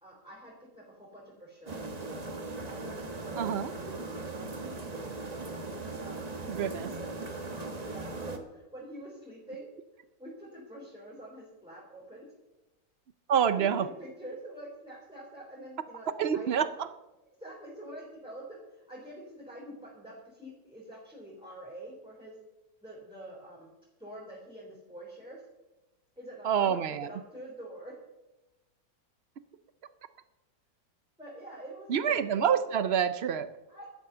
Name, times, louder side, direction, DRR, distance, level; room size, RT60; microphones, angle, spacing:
voice 1, 0.0-1.9 2.5-4.5 6.0-7.2 7.5-9.7 10.2-12.3 13.5-16.5 17.4-22.3 22.8-23.7 24.0-25.4 26.2-27.9 31.2-32.7 33.7-33.9, right 1 dB, 5° right, -6 dB, 3.7 m, -46 dB
sound 1, 1.7-8.4, right 3 dB, 25° right, 1.1 m, -39 dB
voice 2, 3.4-3.7 6.5-6.9 13.3-13.9 16.2-16.9 26.4-27.1 31.9-33.5, right 8 dB, 80° right, 12 dB, 0.5 m, -27 dB
13.0 x 9.4 x 6.8 m, 1.0 s
omnidirectional pair, 1.9 m